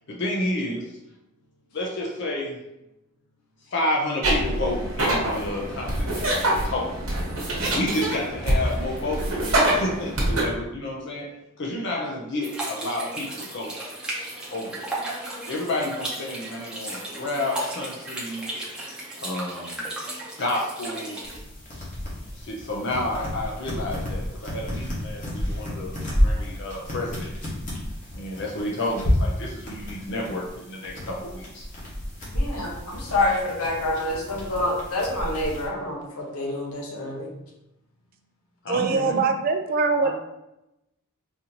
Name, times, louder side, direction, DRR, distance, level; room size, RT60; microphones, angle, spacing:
voice 1, 0.1-0.9 1.7-2.6 3.7-6.9 7.7-11.3 11.6-13.7 14.5-15.0 15.5-18.6 19.2-19.8 20.4-21.2 22.4-27.5 28.1-31.7 38.6-39.3, left 1 dB, 55° left, -2 dB, 0.5 m, -30 dB
sound 1, 4.2-10.4, right 1 dB, 75° right, 1.1 m, -25 dB
sound 2, 12.4-21.4, right 1 dB, 5° right, 0.7 m, -35 dB
sound 3, 21.2-35.7, left 1 dB, 35° left, 1.1 m, -30 dB
voice 2, 32.3-37.3 40.0-40.1, left 2 dB, 85° left, -1 dB, 0.9 m, -27 dB
voice 3, 38.7-40.1, right 4 dB, 40° right, 6 dB, 0.3 m, -22 dB
4.1 x 2.6 x 2.8 m, 0.89 s
head